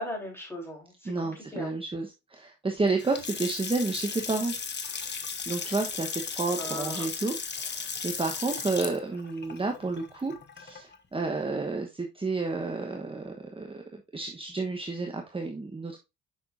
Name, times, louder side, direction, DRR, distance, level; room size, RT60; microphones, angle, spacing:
voice 1, 0.0-1.7 6.6-7.1, left 1 dB, 10° left, -1 dB, 3.9 m, -37 dB
voice 2, 1.0-4.5 5.5-16.0, right 3 dB, 20° right, 3 dB, 1.1 m, -31 dB
Water tap faucet / Sink (filling or washing) / Splash splatter, 2.9-11.0, left 5 dB, 35° left, 1.2 m, -36 dB
7.3 x 5.9 x 2.6 m, 0.24 s
cardioid pair, 90°, 30 cm